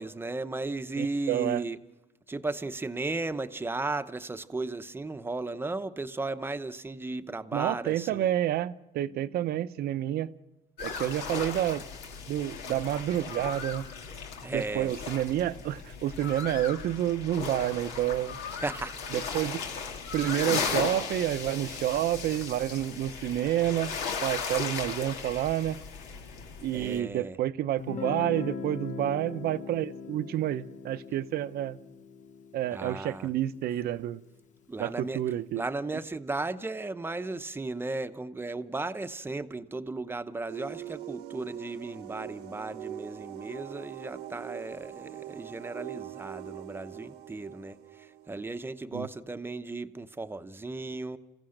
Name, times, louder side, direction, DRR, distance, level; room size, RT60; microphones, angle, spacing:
voice 1, 0.0-1.8 2.3-8.3 14.4-14.9 18.5-19.0 26.7-27.4 32.7-33.3 34.7-35.2 35.5-51.2, right 2 dB, 15° right, 10 dB, 0.8 m, -35 dB
voice 2, 1.0-1.6 7.5-10.3 10.8-11.9 12.3-13.8 14.5-18.4 19.1-19.6 20.1-25.8 26.6-31.8 32.5-34.2 34.8-35.6 48.9-49.1, right 12 dB, 65° right, 13 dB, 0.7 m, -29 dB
sound 1, 10.8-27.0, left 5 dB, 85° left, 2.3 m, -36 dB
Guitar, 27.8-33.6, left 5 dB, 45° left, 0.8 m, -40 dB
sound 2, 40.5-48.8, right 12 dB, 80° right, 1.1 m, -42 dB
29.0 x 15.5 x 6.5 m, 1.0 s
cardioid pair, 110°, 17 cm